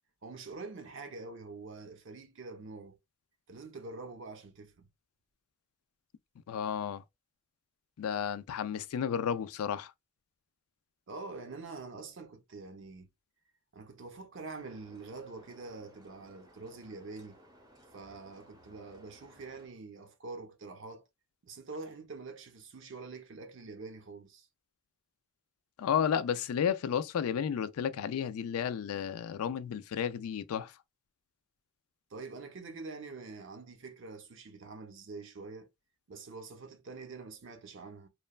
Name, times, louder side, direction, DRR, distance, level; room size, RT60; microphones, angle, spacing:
voice 1, 0.2-3.0 3.5-4.9 11.1-13.1 13.7-17.4 17.9-21.1 21.4-24.5 32.1-35.7 36.1-38.1, right 3 dB, 60° right, 0.6 m, -45 dB
voice 2, 6.5-7.0 8.0-9.9 25.8-30.7, left 8 dB, 85° left, 0.3 m, -32 dB
sound 1, 14.5-19.7, right 1 dB, 15° right, 0.6 m, -60 dB
3.0 x 2.2 x 2.3 m
head